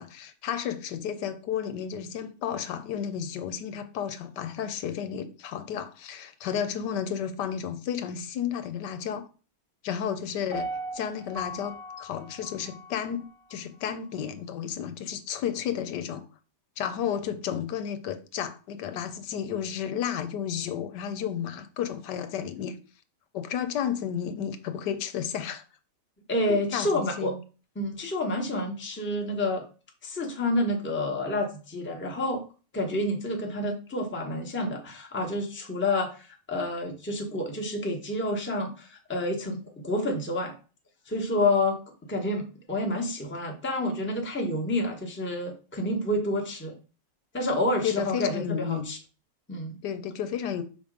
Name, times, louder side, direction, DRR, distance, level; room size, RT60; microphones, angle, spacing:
voice 1, 0.0-9.3 9.8-10.7 10.9-16.2 16.8-22.8 23.3-25.6 26.5-27.4 47.8-48.9 49.8-50.6, left 8 dB, 80° left, 1.3 m, -32 dB
Piano, 10.5-13.6 14.0-14.1, equal, 10° right, 1.0 m, -38 dB
voice 2, 26.3-27.3 27.8-29.6 30.0-32.4 32.7-40.5 41.1-41.8 42.1-46.7 47.3-49.0 49.5-49.8, left 1 dB, 10° left, 0.8 m, -29 dB
5.7 x 3.6 x 5.1 m
omnidirectional pair, 1.8 m